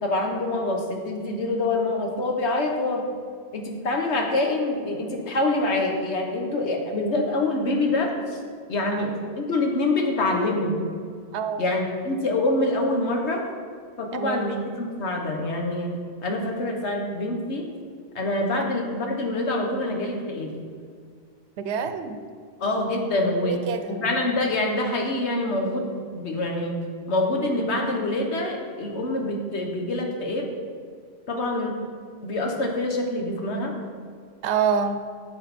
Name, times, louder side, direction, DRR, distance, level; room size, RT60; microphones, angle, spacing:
voice 1, 0.0-3.1 3.5-8.4 8.7-10.7 11.6-13.5 14.0-17.7 18.1-20.5 22.6-23.6 23.9-26.8 27.1-30.5 31.3-31.7 32.2-33.7, left 2 dB, 85° left, 2 dB, 1.4 m, -26 dB
voice 2, 11.3-11.7 14.1-14.5 21.6-22.2 23.3-24.0 34.4-35.0, right 6 dB, 90° right, 9 dB, 0.9 m, -27 dB
9.8 x 6.3 x 4.2 m, 2.1 s
omnidirectional pair, 1.1 m